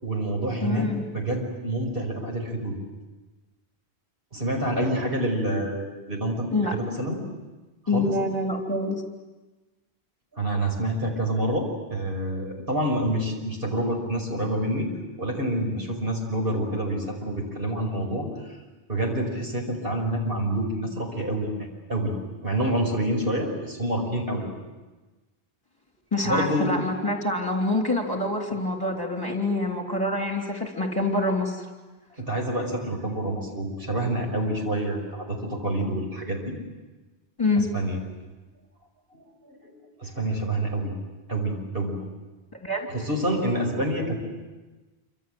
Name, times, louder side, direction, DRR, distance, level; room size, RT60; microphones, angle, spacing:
voice 1, 0.0-0.9 1.1-2.7 4.3-7.2 7.9-8.2 10.3-14.9 15.2-18.3 18.9-22.2 22.4-24.5 26.2-26.7 32.2-36.6 37.6-38.0 39.1-40.9 41.3-42.0 42.9-44.2, right 1 dB, 65° right, 1 dB, 5.8 m, -27 dB
voice 2, 0.6-1.0 6.5-6.8 7.9-9.0 26.1-31.6 37.4-37.7 42.5-42.9, left 2 dB, 20° left, 1 dB, 3.4 m, -26 dB
27.5 x 26.5 x 7.9 m, 1.2 s
omnidirectional pair, 1.0 m